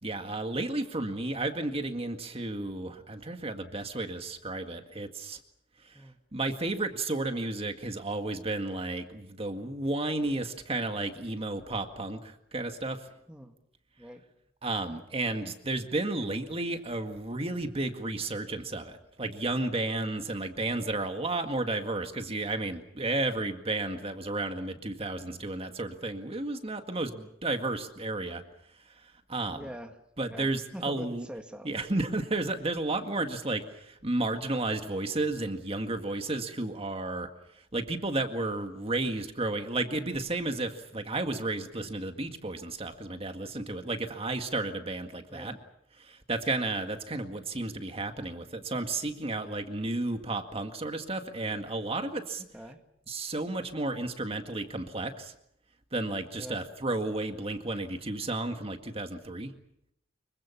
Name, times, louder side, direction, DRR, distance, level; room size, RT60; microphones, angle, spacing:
voice 1, 0.0-5.4 5.8-6.0 6.3-13.0 14.6-28.4 29.3-29.6 30.2-31.3 31.6-37.3 37.7-45.6 46.0-52.4 53.1-55.3 55.9-59.5, right 2 dB, 30° right, 6 dB, 1.9 m, -32 dB
voice 2, 29.5-31.9 45.3-45.6 52.4-52.8 56.4-56.6, equal, 5° right, 4 dB, 1.9 m, -44 dB
25.5 x 23.5 x 7.2 m, 0.76 s
head